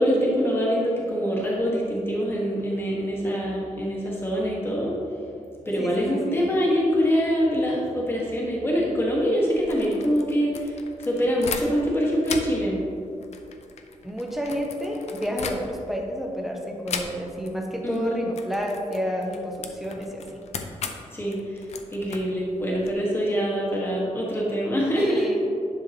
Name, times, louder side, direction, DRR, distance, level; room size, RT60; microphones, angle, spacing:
voice 1, 0.0-5.0 5.6-12.8 17.8-18.2 21.1-21.6 21.9-25.3, equal, 20° left, -4 dB, 1.5 m, -24 dB
voice 2, 5.8-6.2 14.0-20.4 24.9-25.4, equal, ahead, 0 dB, 0.9 m, -30 dB
sound 1, 9.5-11.9 12.2-16.0 16.9-17.5 17.8-18.0 18.3-22.9, left 5 dB, 55° left, 0.6 m, -37 dB
10.5 x 5.7 x 2.9 m, 2.5 s
wide cardioid pair, 150°, 13 cm